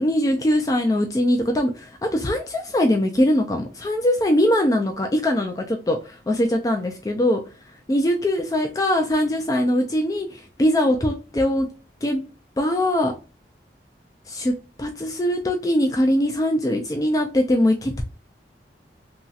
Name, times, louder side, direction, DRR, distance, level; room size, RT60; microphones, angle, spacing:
voice 1, 0.0-7.4 7.9-11.7 12.0-12.2 12.6-13.1 14.3-14.5 14.8-18.0, left 1 dB, 20° left, 4 dB, 0.3 m, -21 dB
2.9 x 2.7 x 2.3 m, 0.33 s
head